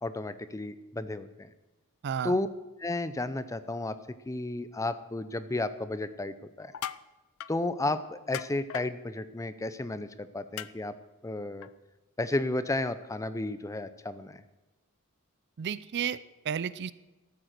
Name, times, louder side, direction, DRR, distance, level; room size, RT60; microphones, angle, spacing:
voice 1, 0.0-1.5 2.2-2.5 2.8-3.9 4.3-6.7 7.5-10.9 11.2-11.7 12.2-14.4, left 2 dB, 15° left, 13 dB, 0.6 m, -32 dB
voice 2, 2.0-2.4 15.6-16.9, right 8 dB, 50° right, 17 dB, 0.4 m, -32 dB
sound 1, 6.6-7.0 7.4-7.5 8.3-8.9 10.6-10.7 11.6-11.7, left 10 dB, 65° left, 0.4 m, -37 dB
13.5 x 8.9 x 6.6 m, 1.1 s
head